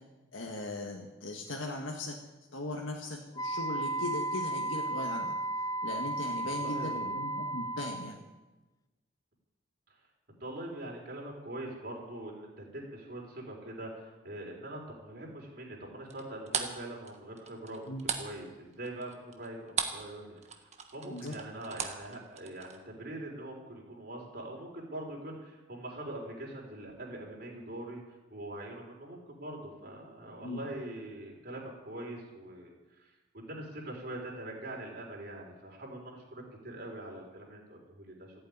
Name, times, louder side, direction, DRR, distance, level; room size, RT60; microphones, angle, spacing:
voice 1, 0.3-2.2 2.5-5.4 5.8-8.2 17.9-18.1 21.1-21.3 30.4-30.6, left 2 dB, 90° left, 0 dB, 1.8 m, -38 dB
Wind instrument woodwind instrument, 3.4-8.2, right 2 dB, 20° left, 0.7 m, -34 dB
voice 2, 6.4-7.2 10.3-28.0 28.3-38.3, right 1 dB, 55° right, -2 dB, 4.5 m, -43 dB
sound 1, 16.1-20.1 20.4-22.8, right 6 dB, 35° right, 1.4 m, -37 dB
15.0 x 9.0 x 9.6 m, 1.1 s
head